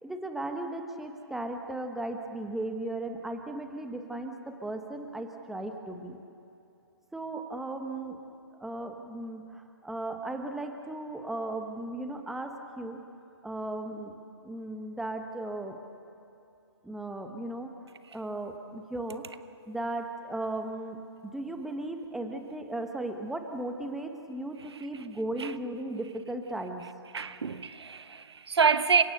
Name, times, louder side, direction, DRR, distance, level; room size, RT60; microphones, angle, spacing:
voice 1, 0.0-6.2 7.1-8.2 8.6-13.0 13.4-14.1 14.4-15.8 16.8-17.7 18.1-19.2 19.7-26.8, right 2 dB, ahead, 1.2 m, -36 dB
voice 2, 27.1-29.0, right 5 dB, 75° right, 1.1 m, -26 dB
30.0 x 17.0 x 6.8 m
hypercardioid pair, 140°, 14 cm